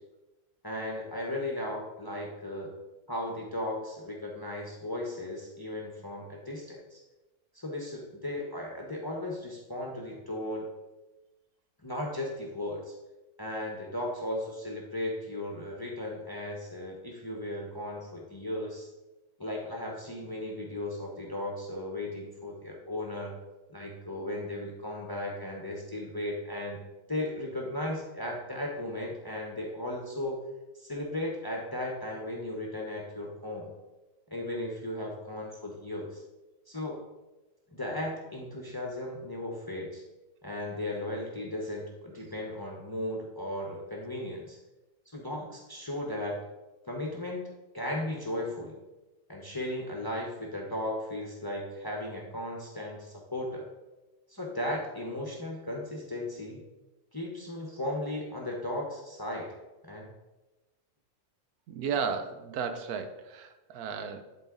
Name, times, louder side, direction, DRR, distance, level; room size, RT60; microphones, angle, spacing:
voice 1, 0.6-2.7 3.1-7.0 7.5-10.7 11.8-12.9 13.4-18.9 19.4-23.3 23.7-26.8 27.1-30.4 30.8-33.7 34.3-36.2 36.7-37.0 37.7-40.0 40.4-44.6 45.1-46.4 46.9-47.4 47.7-48.8 49.3-53.7 54.3-56.6 57.1-59.5 59.8-60.1, left 1 dB, 20° left, -1 dB, 0.8 m, -36 dB
voice 2, 61.7-64.2, right 6 dB, 75° right, 8 dB, 1.2 m, -34 dB
11.0 x 3.9 x 3.8 m, 1.1 s
omnidirectional pair, 1.6 m